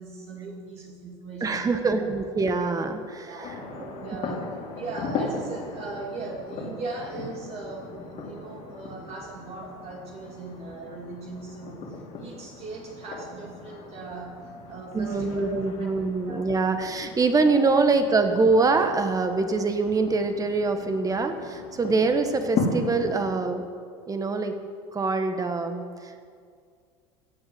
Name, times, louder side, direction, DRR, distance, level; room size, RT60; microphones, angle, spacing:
voice 1, 0.0-1.9 3.3-4.4 4.7-16.4 17.4-17.5, right 3 dB, 45° right, -1 dB, 2.5 m, -39 dB
voice 2, 1.4-3.5 14.9-23.7 24.1-24.5 24.9-26.2, right 3 dB, 25° right, 7 dB, 1.6 m, -24 dB
sound 1, 3.4-23.4, left 3 dB, 50° left, 3.3 m, -37 dB
15.5 x 8.0 x 8.0 m, 2.1 s
hypercardioid pair, 90°, 15 cm